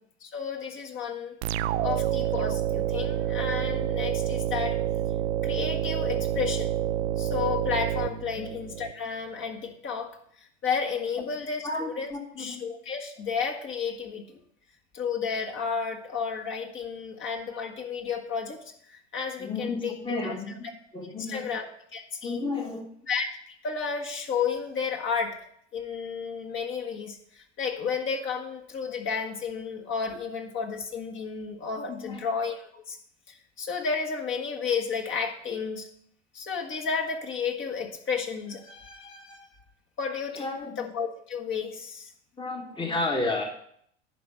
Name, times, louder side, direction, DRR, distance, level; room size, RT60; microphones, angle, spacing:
voice 1, 0.2-1.3 1.8-4.8 5.4-6.7 7.2-10.2 10.6-12.1 12.4-14.4 14.9-20.3 21.3-21.6 21.9-22.4 23.1-25.4 25.7-33.0 33.3-35.9 36.3-39.5 40.0-42.1, left 6 dB, 35° left, 1 dB, 1.6 m, -32 dB
sound 1, 1.4-8.9, right 12 dB, 70° right, 0.6 m, -28 dB
voice 2, 11.6-12.6 19.4-20.5 20.9-21.5 22.2-22.9 32.0-32.2 40.3-40.9 42.4-43.5, left 2 dB, 15° left, 3 dB, 1.4 m, -32 dB
11.0 x 4.4 x 7.1 m, 0.67 s
hypercardioid pair, 90°, 33 cm